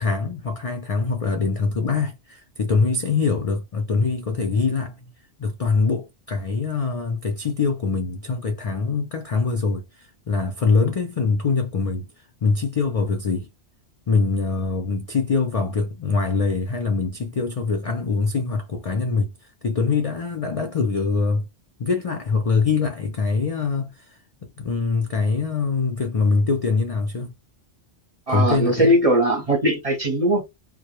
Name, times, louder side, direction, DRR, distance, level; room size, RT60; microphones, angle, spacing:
voice 1, 0.0-5.0 5.4-12.1 12.4-13.5 14.1-19.3 19.6-21.5 21.8-24.1 24.4-27.3 28.3-28.9, left 4 dB, 65° left, 0.3 m, -23 dB
voice 2, 28.3-30.4, right 1 dB, 40° right, 0.6 m, -19 dB
2.1 x 2.0 x 2.9 m
omnidirectional pair, 1.2 m